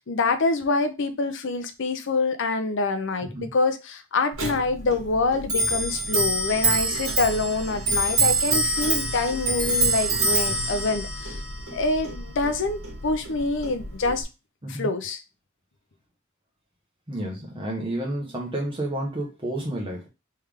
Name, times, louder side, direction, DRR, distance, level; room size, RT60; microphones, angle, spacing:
voice 1, 0.0-11.4 11.7-14.3 14.7-15.2, left 3 dB, 65° left, 0.6 m, -26 dB
Clock, 4.3-14.2, right 2 dB, 85° right, 1.8 m, -26 dB
voice 2, 17.1-20.1, right 1 dB, 25° right, 1.0 m, -30 dB
3.5 x 3.3 x 3.4 m
head